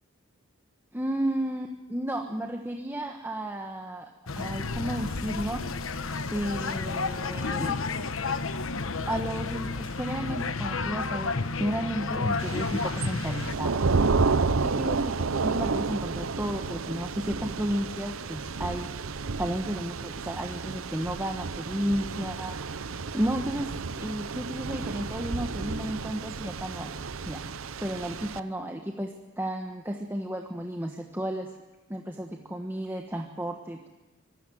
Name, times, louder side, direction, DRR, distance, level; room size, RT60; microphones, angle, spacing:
voice 1, 0.9-4.1 4.3-5.6 6.3-7.8 9.1-13.8 14.6-18.9 19.4-23.7 24.0-26.9 27.3-31.5 31.9-33.9, right 1 dB, 10° right, 2 dB, 1.3 m, -33 dB
sound 1, 4.3-13.5, left 4 dB, 70° left, 1.2 m, -31 dB
Thunder / Rain, 12.4-28.4, right 4 dB, 70° right, 0.8 m, -31 dB
25.0 x 19.5 x 7.8 m, 1.1 s
head